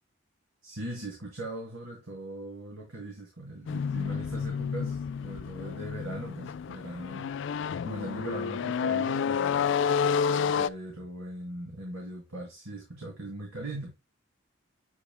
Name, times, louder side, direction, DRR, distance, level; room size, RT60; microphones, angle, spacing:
voice 1, 0.6-7.3 7.8-9.7 10.6-13.9, right 1 dB, 90° right, 2.5 m, -40 dB
sound 1, 3.7-10.7, left 6 dB, 55° left, 0.3 m, -30 dB
8.7 x 4.9 x 2.2 m
head